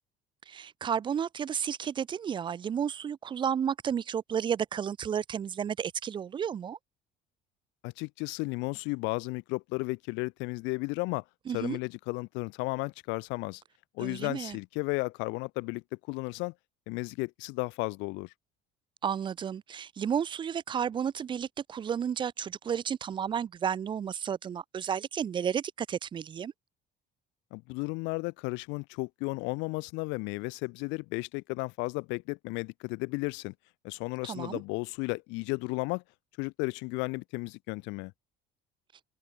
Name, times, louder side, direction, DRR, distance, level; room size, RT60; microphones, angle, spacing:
voice 1, 0.5-6.8 11.5-11.8 14.0-14.6 19.0-26.5 34.2-34.6, right 8 dB, 25° right, 0.8 m, -32 dB
voice 2, 7.8-11.2 11.5-13.6 14.0-16.5 16.9-18.3 27.5-33.5 33.8-36.0 36.4-38.1, left 27 dB, 85° left, 0.4 m, -34 dB
cardioid pair, 170°, 18 cm